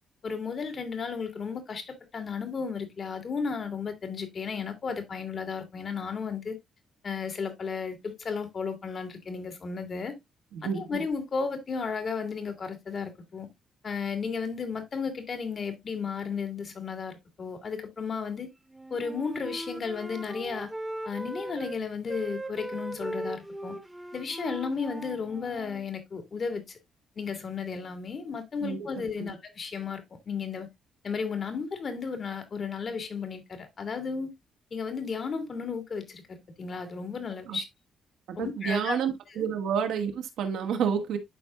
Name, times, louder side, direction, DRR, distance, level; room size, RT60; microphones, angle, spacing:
voice 1, 0.2-6.6 7.0-10.1 10.6-13.5 13.8-18.5 18.9-20.7 21.1-23.8 24.1-26.8 27.2-30.7 31.0-34.3 34.7-37.6 38.4-39.0 39.3-39.5, left 5 dB, 45° left, 2.0 m, -34 dB
voice 2, 10.5-11.0 28.6-29.3 37.5-37.6 38.3-41.2, right 7 dB, 80° right, 1.6 m, -30 dB
Wind instrument woodwind instrument, 18.7-21.8 22.1-25.8, right 1 dB, 10° right, 1.2 m, -39 dB
11.5 x 4.5 x 2.4 m
cardioid pair, 90°, 0 cm